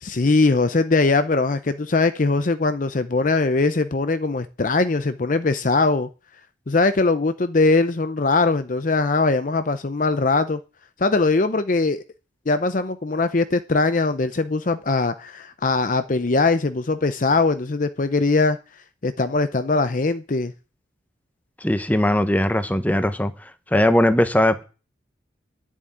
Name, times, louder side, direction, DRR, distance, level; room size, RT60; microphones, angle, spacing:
voice 1, 0.0-6.1 6.7-10.6 11.0-12.0 12.5-18.6 19.0-20.5, left 3 dB, 45° left, 0.6 m, -21 dB
voice 2, 21.6-23.3 23.7-24.6, left 1 dB, 10° left, 1.0 m, -19 dB
11.0 x 7.4 x 8.9 m
head